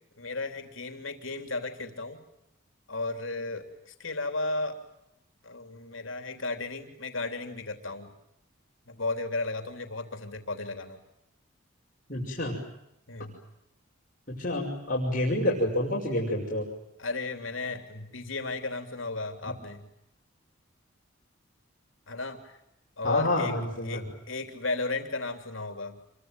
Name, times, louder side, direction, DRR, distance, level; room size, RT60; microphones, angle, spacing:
voice 1, 0.2-2.2 2.9-4.8 5.4-8.1 8.9-11.0 13.1-13.4 17.0-19.9 22.1-22.6 23.0-23.6 23.8-26.0, left 3 dB, 70° left, 6 dB, 3.4 m, -34 dB
voice 2, 12.1-12.6 14.3-16.6 19.4-19.5 23.0-24.1, left 1 dB, 40° left, -2 dB, 5.9 m, -28 dB
27.5 x 23.5 x 9.2 m, 0.83 s
head